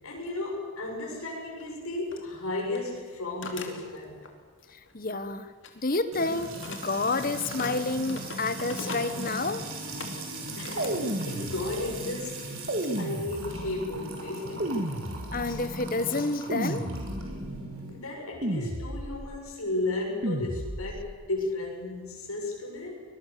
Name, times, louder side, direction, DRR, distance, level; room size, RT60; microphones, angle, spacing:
voice 1, 0.0-4.2 10.6-12.5 13.0-14.8 17.9-23.0, left 2 dB, 80° left, -1 dB, 7.1 m, -34 dB
sound 1, 1.6-1.7 2.1-2.2 2.6-2.9 3.4-4.4 4.6-5.3 5.6-11.4 11.7-12.0 12.7-12.8 13.4-13.7, left 3 dB, 55° left, 2.8 m, -42 dB
voice 2, 4.7-9.7 15.3-16.9, left 3 dB, 40° left, 11 dB, 1.3 m, -30 dB
Music / Water tap faucet / Trickle dribble, 6.1-17.9, right 1 dB, 70° right, 5.3 m, -38 dB
sound 2, 10.8-12.0 12.7-13.9 14.6-15.7 16.5-17.5 18.4-19.4 20.2-21.1, right 1 dB, 45° right, 2.1 m, -33 dB
23.5 x 22.0 x 6.9 m, 1.5 s
head